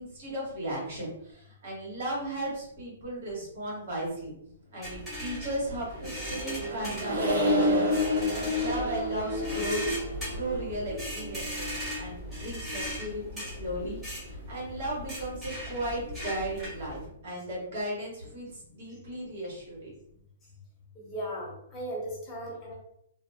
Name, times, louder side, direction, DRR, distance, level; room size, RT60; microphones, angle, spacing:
voice 1, 0.0-4.3 4.7-10.0 10.3-19.9, right 1 dB, 60° right, -4 dB, 1.4 m, -36 dB
sound 1, 4.8-17.1, equal, 10° right, 1.3 m, -39 dB
Accelerating revving vroom, 5.6-12.3, left 1 dB, 75° right, 1.2 m, -30 dB
voice 2, 21.0-22.7, right 1 dB, 20° left, -3 dB, 0.8 m, -37 dB
2.4 x 2.2 x 2.3 m, 0.72 s
hypercardioid pair, 150°, 0 cm